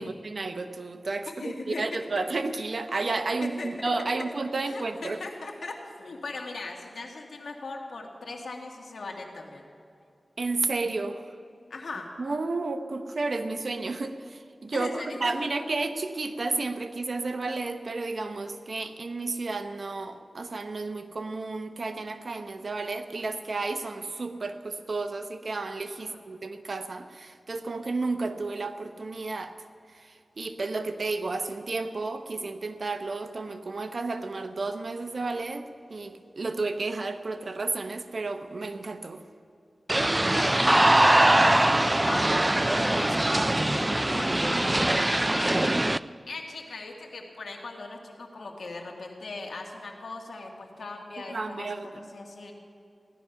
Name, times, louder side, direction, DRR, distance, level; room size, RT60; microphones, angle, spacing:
voice 1, 0.0-5.2 10.4-11.2 12.2-29.5 29.9-35.6 35.9-39.2 51.3-51.9, right 3 dB, 65° right, 8 dB, 0.9 m, -32 dB
voice 2, 1.4-2.1 3.4-4.1 4.6-9.7 11.7-12.1 14.7-15.3 26.0-26.2 40.3-45.0 45.3-45.9 46.3-52.5, left 3 dB, 85° left, 2 dB, 1.8 m, -39 dB
sound 1, 39.9-46.0, right 1 dB, 20° right, 0.3 m, -22 dB
16.0 x 11.5 x 5.8 m, 2.6 s
wide cardioid pair, 60°, 0 cm